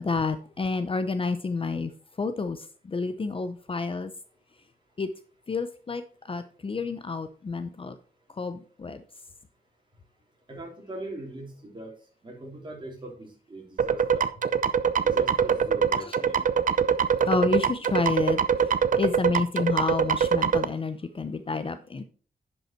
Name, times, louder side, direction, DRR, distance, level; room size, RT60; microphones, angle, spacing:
voice 1, 0.0-1.9 2.2-4.1 5.0-5.1 5.5-6.0 6.3-8.0 8.3-9.0 16.0-16.2 17.3-22.0, left 4 dB, 35° left, 10 dB, 0.7 m, -29 dB
voice 2, 10.5-11.9 12.2-14.2 15.0-16.5, right 1 dB, 30° right, 0 dB, 3.3 m, -40 dB
sound 1, 13.8-20.6, right 7 dB, 60° right, 0.6 m, -23 dB
10.5 x 5.4 x 4.5 m, 0.41 s
wide cardioid pair, 120°, 16 cm